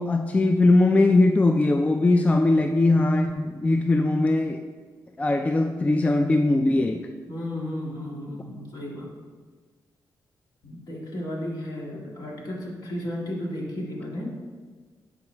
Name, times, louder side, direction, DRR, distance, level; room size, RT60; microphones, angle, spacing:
voice 1, 0.0-4.6 5.2-7.1, left 2 dB, 20° left, 6 dB, 0.3 m, -20 dB
voice 2, 7.3-9.1 10.6-14.3, left 1 dB, 60° left, -4 dB, 1.9 m, -33 dB
10.5 x 3.9 x 3.3 m, 1.5 s
cardioid pair, 90°, 8 cm